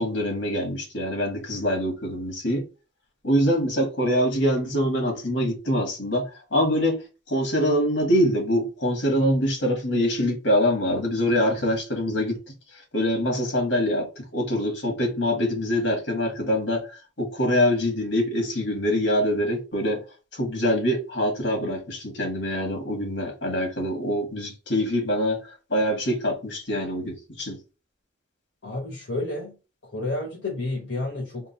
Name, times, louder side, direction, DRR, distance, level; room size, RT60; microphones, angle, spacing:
voice 1, 0.0-2.6 3.2-12.4 12.9-20.0 20.3-25.4 25.7-27.6, equal, 70° left, 1.8 m, -24 dB
voice 2, 28.6-29.6 29.8-31.5, left 2 dB, 85° left, 1.0 m, -30 dB
3.7 x 2.3 x 4.1 m
head